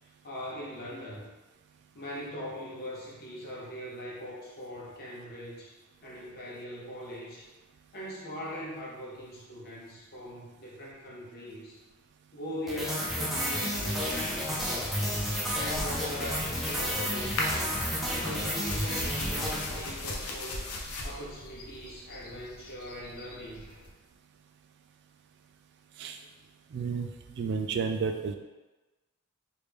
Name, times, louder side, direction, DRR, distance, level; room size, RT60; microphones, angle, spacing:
voice 1, 0.0-1.3 1.9-5.7 6.0-7.5 7.9-11.7 12.3-14.9 15.5-20.7 21.0-23.7, equal, 45° left, -5 dB, 0.9 m, -41 dB
sound 1, 12.7-20.2, equal, ahead, 0.6 m, -31 dB
sound 2, 13.9-23.9, left 2 dB, 90° left, 0.6 m, -39 dB
voice 2, 26.7-27.1 27.4-28.3, right 5 dB, 50° right, 6 dB, 0.3 m, -31 dB
3.1 x 2.6 x 3.4 m, 1.2 s
head